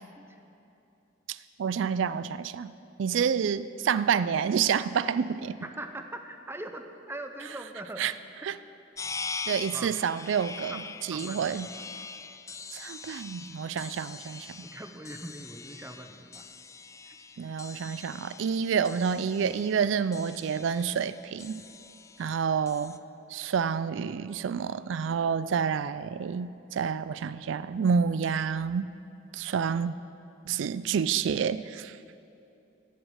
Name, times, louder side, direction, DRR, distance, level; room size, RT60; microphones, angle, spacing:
voice 1, 1.6-2.7 3.0-5.6 8.0-8.1 8.4-8.5 9.5-10.8 11.1-11.7 12.7-14.7 17.4-21.7 22.2-23.0 23.3-28.9 29.3-29.9 30.5-32.0, right 7 dB, 75° right, 15 dB, 0.4 m, -28 dB
voice 2, 5.6-8.1 9.7-10.0 10.7-11.9 14.6-16.5 17.0-17.2, right 1 dB, 15° right, 6 dB, 0.8 m, -42 dB
sound 1, 9.0-23.0, left 5 dB, 15° left, 0.3 m, -43 dB
13.5 x 7.8 x 8.0 m, 2.8 s
head